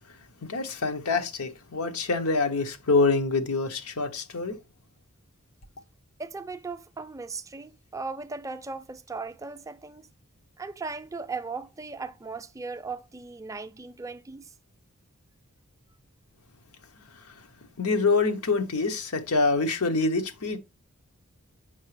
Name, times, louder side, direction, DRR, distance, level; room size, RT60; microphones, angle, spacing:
voice 1, 0.5-4.6 17.8-20.6, left 3 dB, 90° left, 0.9 m, -25 dB
voice 2, 6.2-10.1 10.6-14.5, right 4 dB, 15° right, 0.4 m, -37 dB
7.3 x 5.6 x 3.1 m
head